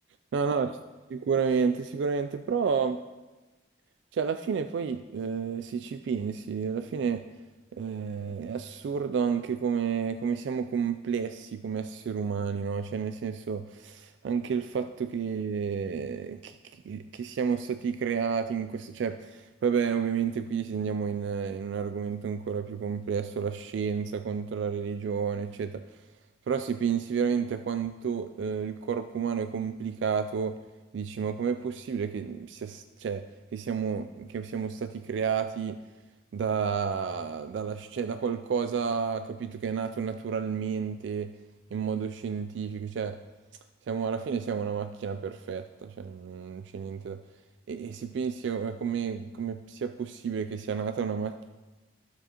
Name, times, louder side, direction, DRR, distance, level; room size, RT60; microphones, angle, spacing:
voice 1, 0.3-0.8 1.1-3.0 4.1-7.2 7.7-25.8 26.5-30.6 30.9-33.2 33.5-35.8 36.3-41.3 41.7-43.2 43.9-47.2 47.7-51.5, right 6 dB, 75° right, 9 dB, 0.3 m, -31 dB
12.5 x 7.0 x 2.9 m, 1.2 s
head